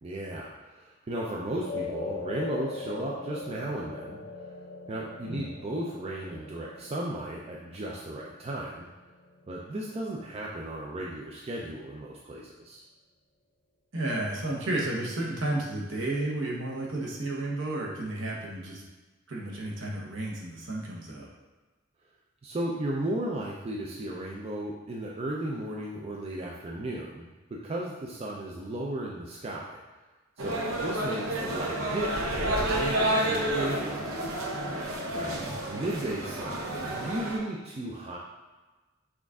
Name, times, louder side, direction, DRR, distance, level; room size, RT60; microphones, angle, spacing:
voice 1, 0.0-4.2 4.9-8.8 9.5-12.8 22.4-29.8 30.4-34.1 35.1-35.4 35.7-38.2, right 1 dB, 30° right, -3 dB, 0.4 m, -35 dB
sound 1, 1.6-10.1, left 3 dB, 50° left, 0.5 m, -41 dB
voice 2, 13.9-18.8 19.3-21.3 35.2-35.5, right 1 dB, 65° right, -2 dB, 1.0 m, -32 dB
sound 2, 30.4-37.4, right 1 dB, 85° right, 0.7 m, -30 dB
6.0 x 2.4 x 3.5 m, 1.2 s
head